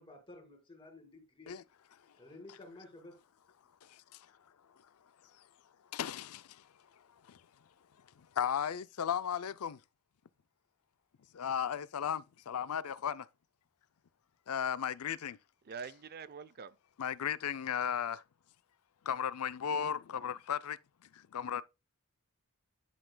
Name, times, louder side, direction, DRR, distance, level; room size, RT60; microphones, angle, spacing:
voice 1, 0.0-1.5 2.2-3.1, left 2 dB, 25° left, 2.3 m, -53 dB
voice 2, 3.8-4.2 5.9-6.6 7.3-7.4 8.4-9.8 11.3-13.3 14.5-15.4 17.0-18.2 19.1-20.8 21.1-21.6, left 8 dB, 75° left, 0.5 m, -35 dB
voice 3, 15.6-16.8, right 5 dB, 45° right, 0.6 m, -45 dB
10.5 x 6.0 x 2.2 m
head